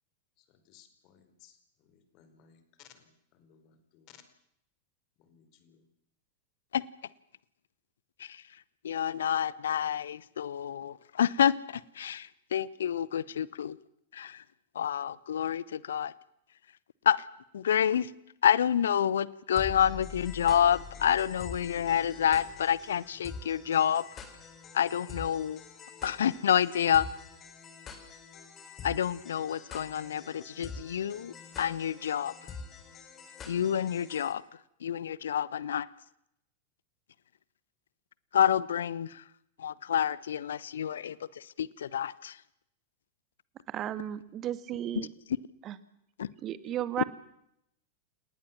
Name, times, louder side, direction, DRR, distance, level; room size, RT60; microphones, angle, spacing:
voice 1, 0.4-4.2 5.2-5.9, left 9 dB, 40° left, 4.7 m, -60 dB
voice 2, 8.8-13.8 14.1-14.4 14.7-16.1 17.0-17.2 17.5-18.1 18.4-24.0 24.7-25.6 26.0-27.1 28.8-32.5 33.5-34.4 34.8-35.9 38.3-39.2 39.6-42.4 46.2-46.3, left 9 dB, 65° left, 0.9 m, -28 dB
sound 1, 19.6-34.3, left 5 dB, 25° left, 4.4 m, -45 dB
voice 3, 43.7-45.1 45.6-45.8 46.4-47.0, right 11 dB, 30° right, 1.9 m, -34 dB
29.5 x 18.5 x 7.4 m
figure-of-eight pair, 90°, 0 cm